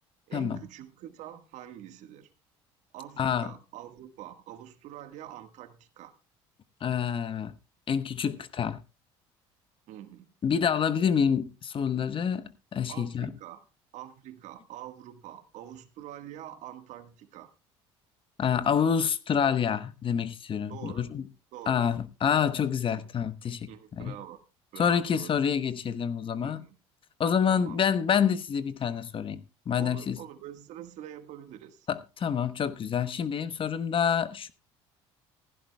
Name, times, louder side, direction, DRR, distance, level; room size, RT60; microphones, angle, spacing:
voice 1, 0.3-2.3 2.9-6.1 9.9-10.3 12.9-13.6 13.9-17.5 20.7-21.0 21.5-21.8 22.3-22.5 23.7-24.4 24.7-25.4 26.4-26.8 27.5-27.8 29.8-31.9, right 11 dB, 65° right, 1.6 m, -45 dB
voice 2, 3.2-3.5 6.8-7.5 7.9-8.8 10.4-13.3 18.4-21.2 21.7-23.7 24.0-24.2 24.8-26.6 27.2-30.2 31.9-34.5, left 7 dB, 40° left, 1.0 m, -27 dB
16.0 x 15.5 x 2.3 m
supercardioid pair, 75°, 13 cm